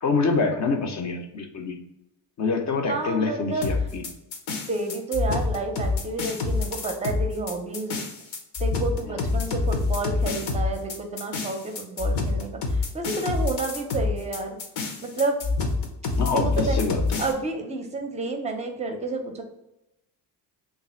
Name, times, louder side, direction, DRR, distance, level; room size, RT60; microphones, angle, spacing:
voice 1, 0.0-1.8 2.4-4.0 9.1-9.4 16.2-17.2, left 4 dB, 45° left, 4 dB, 0.6 m, -26 dB
voice 2, 2.9-3.7 4.7-8.0 8.6-14.6 15.0-15.4 16.4-16.8 17.2-19.4, right 3 dB, 15° right, 4 dB, 0.5 m, -30 dB
sound 1, 3.6-17.3, left 3 dB, 80° left, 0.9 m, -27 dB
3.2 x 2.4 x 4.2 m, 0.90 s
cardioid pair, 130°, 40 cm